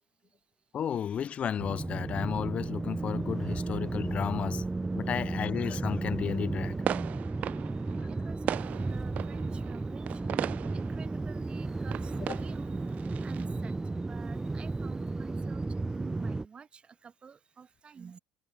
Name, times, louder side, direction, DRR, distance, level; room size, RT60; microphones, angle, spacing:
voice 1, 0.7-4.7 4.9-6.8 8.0-8.1 12.3-12.4, left 8 dB, 40° left, 0.5 m, -33 dB
sound 1, 1.6-16.5, right 3 dB, 15° right, 0.4 m, -34 dB
sound 2, 6.6-13.5, right 11 dB, 50° right, 1.3 m, -38 dB
voice 2, 8.1-10.4 10.7-18.2, right 6 dB, 30° right, 3.4 m, -50 dB
hypercardioid pair, 70°, 3 cm